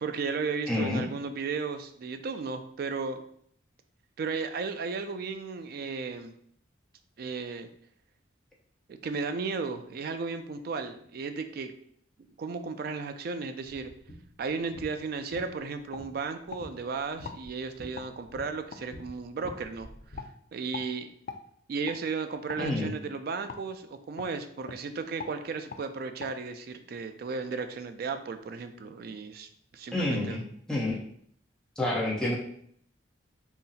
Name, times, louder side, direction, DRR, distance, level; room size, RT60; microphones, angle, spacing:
voice 1, 0.0-3.2 4.2-6.3 7.2-7.7 8.9-11.7 12.4-13.9 14.4-19.9 20.1-20.2 20.5-21.1 21.7-30.4, right 4 dB, 50° right, 8 dB, 0.3 m, -34 dB
voice 2, 0.7-1.0 22.6-22.9 29.9-30.4 30.7-31.0 31.8-32.3, left 1 dB, 5° left, -5 dB, 0.7 m, -28 dB
sound 1, 13.7-20.2, equal, 70° left, 1.1 m, -49 dB
sound 2, 14.8-14.9 15.3-15.5 15.9-16.6 17.2-17.4 18.0-18.1 18.7-18.8 19.5-19.6 20.1-20.3 20.7-20.9 21.3-21.4 21.8-22.0 22.5-22.7 23.5-23.6 24.2-24.3 24.6-24.8 25.2-25.4 25.7-25.8 26.2-26.3, left 5 dB, 45° left, 0.3 m, -42 dB
3.8 x 2.0 x 4.0 m, 0.65 s
head